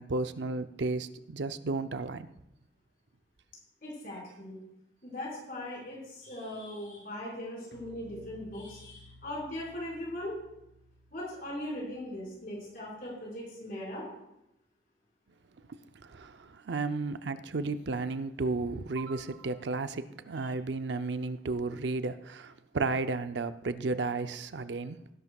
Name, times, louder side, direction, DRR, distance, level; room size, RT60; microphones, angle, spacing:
voice 1, 0.0-2.3 15.7-25.0, right 3 dB, 70° right, 0.6 m, -33 dB
voice 2, 3.8-4.6 5.0-10.4 11.1-14.1, left 1 dB, 50° left, 5.1 m, -39 dB
sound 1, 7.7-12.9, left 1 dB, 80° left, 2.3 m, -56 dB
18.0 x 11.0 x 2.4 m
head